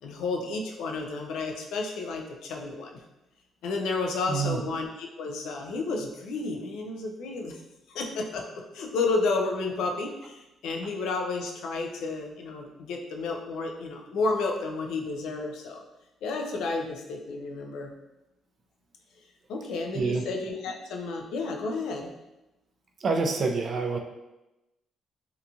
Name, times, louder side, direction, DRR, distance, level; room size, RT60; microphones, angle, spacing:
voice 1, 0.0-3.0 3.6-7.6 7.9-15.8 16.2-17.9 19.5-22.1, left 3 dB, 85° left, 2 dB, 0.4 m, -31 dB
voice 2, 4.3-4.6 19.9-20.2 23.0-24.0, right 4 dB, 50° right, 3 dB, 0.4 m, -27 dB
2.8 x 2.5 x 2.3 m, 0.98 s
cardioid pair, 90°, 0 cm